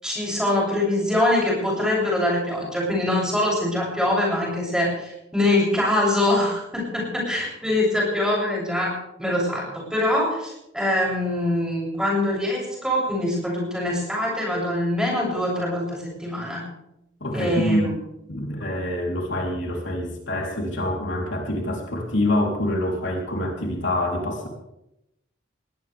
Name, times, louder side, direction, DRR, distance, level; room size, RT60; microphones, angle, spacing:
voice 1, 0.0-16.6 17.3-18.0, left 1 dB, 5° right, -4 dB, 7.9 m, -24 dB
voice 2, 17.2-17.9 18.3-24.5, left 1 dB, 70° left, 0 dB, 3.7 m, -26 dB
21.0 x 18.0 x 3.6 m, 0.84 s
head